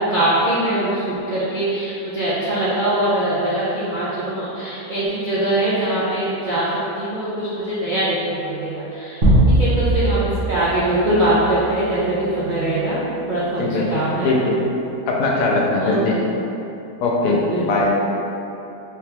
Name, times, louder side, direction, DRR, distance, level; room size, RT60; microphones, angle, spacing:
voice 1, 0.0-9.2 9.5-13.0 13.3-14.3 15.8-16.0 17.2-17.7, right 1 dB, 70° right, -10 dB, 0.4 m, -22 dB
sound 1, 9.2-11.7, right 1 dB, 40° right, 0.9 m, -19 dB
voice 2, 13.6-14.0 14.2-14.6 15.1-16.3 17.0-17.9, left 2 dB, 85° left, -2 dB, 1.2 m, -20 dB
3.4 x 2.8 x 3.3 m, 2.9 s
omnidirectional pair, 1.7 m